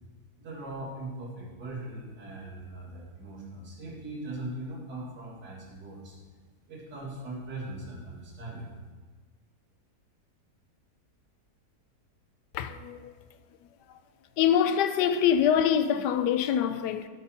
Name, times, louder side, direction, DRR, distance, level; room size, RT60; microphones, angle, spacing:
voice 1, 0.4-6.2 6.7-8.7, right 2 dB, 85° right, 2.5 m, -40 dB
voice 2, 12.5-13.1 14.4-17.1, left 9 dB, 85° left, 1.2 m, -24 dB
12.5 x 4.3 x 5.6 m
omnidirectional pair, 1.8 m